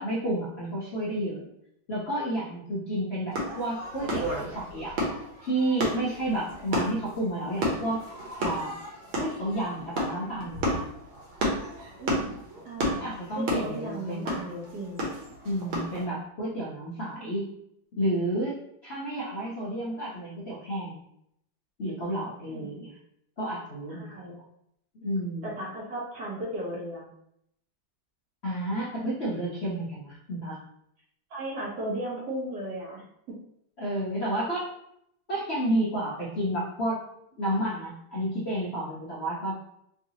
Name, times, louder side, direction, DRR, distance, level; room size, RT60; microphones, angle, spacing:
voice 1, 0.0-1.5 1.9-4.9 5.4-8.0 8.4-8.8 9.2-10.9 13.0-14.4 15.4-17.5 17.9-21.0 21.8-23.0 23.4-24.3 25.0-25.5 28.4-30.6 33.8-34.7 35.3-37.0 37.4-39.6, right 1 dB, 55° left, -8 dB, 0.7 m, -31 dB
sound 1, 3.3-16.0, equal, 85° right, 1.7 m, -32 dB
voice 2, 12.0-12.3 12.6-15.0 22.5-22.7 23.9-24.3 25.4-27.1 31.3-33.4, right 1 dB, 60° right, -5 dB, 1.3 m, -36 dB
3.7 x 2.6 x 2.7 m, 0.74 s
omnidirectional pair, 2.2 m